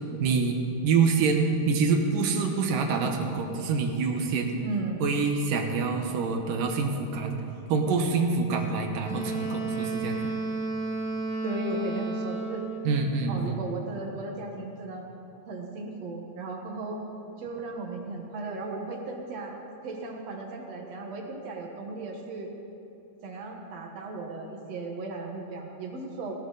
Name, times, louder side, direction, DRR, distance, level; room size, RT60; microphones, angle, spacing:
voice 1, 0.2-0.6 0.8-4.6 5.0-7.4 7.7-10.3 12.8-13.6, right 4 dB, 75° right, 3 dB, 2.8 m, -26 dB
voice 2, 4.6-5.1 11.4-12.6 13.3-15.1 15.5-17.0 17.4-19.5 19.8-22.5 23.2-26.3, right 2 dB, 55° right, 1 dB, 2.4 m, -36 dB
Wind instrument woodwind instrument, 9.0-13.0, right 3 dB, 60° left, 2.7 m, -32 dB
18.5 x 17.0 x 4.1 m, 3.0 s
omnidirectional pair, 3.9 m